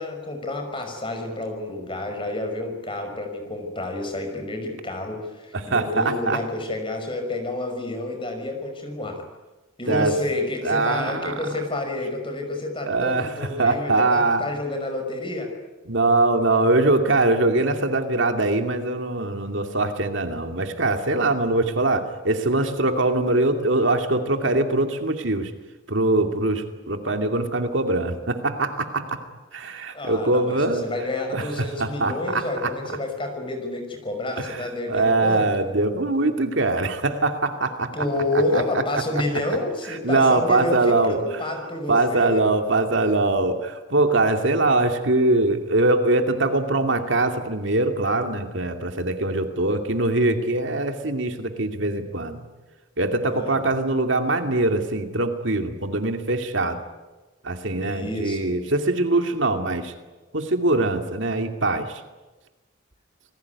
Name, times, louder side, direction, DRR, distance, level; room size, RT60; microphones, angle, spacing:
voice 1, 0.0-9.2 9.8-15.5 29.9-35.7 37.9-42.4 53.2-53.6 57.8-58.5, left 2 dB, 25° left, 4 dB, 5.8 m, -29 dB
voice 2, 5.5-6.4 9.9-10.1 10.6-11.3 12.8-14.4 15.9-25.5 25.9-29.2 29.5-30.9 31.3-32.7 34.4-38.1 38.5-38.8 39.9-41.2 41.9-52.4 53.0-56.8 57.4-59.9 60.3-62.0, right 2 dB, 65° right, 6 dB, 2.5 m, -22 dB
28.0 x 20.0 x 9.7 m, 1.2 s
head